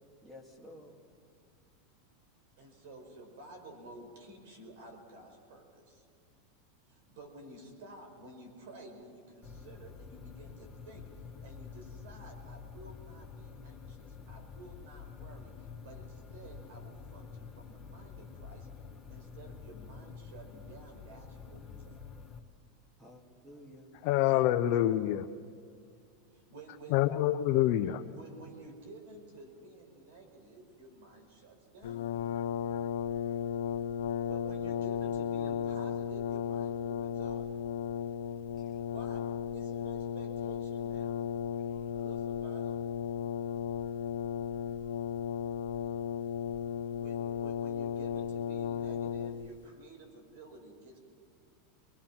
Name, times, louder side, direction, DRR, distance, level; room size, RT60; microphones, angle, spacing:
voice 1, 0.2-1.0 23.0-23.9 38.6-38.8 41.6-41.7, left 1 dB, 15° right, 3 dB, 2.2 m, -53 dB
voice 2, 2.6-6.1 6.8-18.7 19.1-22.0 26.3-27.0 28.1-32.2 34.0-37.5 38.8-39.2 39.5-41.2 41.9-42.8 47.0-51.0, right 2 dB, 75° right, 4 dB, 5.4 m, -52 dB
sound 1, 9.4-22.4, left 5 dB, 10° left, 1.4 m, -48 dB
voice 3, 24.0-25.3 26.9-28.0, left 13 dB, 50° left, 5 dB, 0.7 m, -26 dB
Brass instrument, 31.8-49.6, left 8 dB, 85° left, 0.7 m, -35 dB
24.0 x 21.0 x 6.0 m, 2.3 s
supercardioid pair, 155°, 0 cm